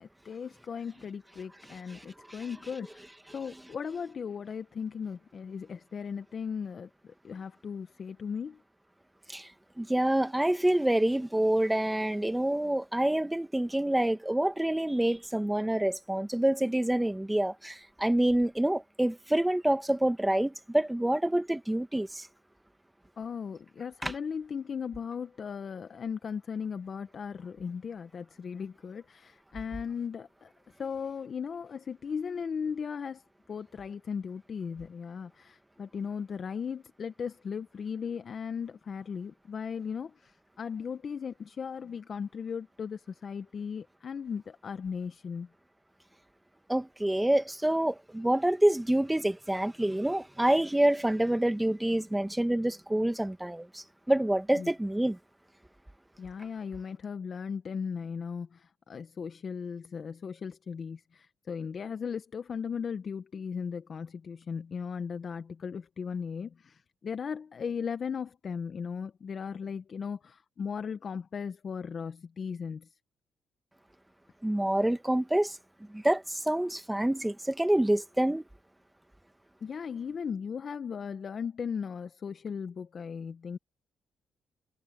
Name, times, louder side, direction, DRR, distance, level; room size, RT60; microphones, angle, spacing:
voice 1, 0.0-8.6 23.2-30.5 30.8-45.5 54.5-54.7 56.2-72.9 79.6-83.6, left 6 dB, 45° left, 0.9 m, -37 dB
voice 2, 9.8-22.3 24.0-24.1 46.7-55.2 74.4-75.6 75.9-78.4, right 1 dB, 10° right, 1.6 m, -27 dB
cardioid pair, 90°, 0 cm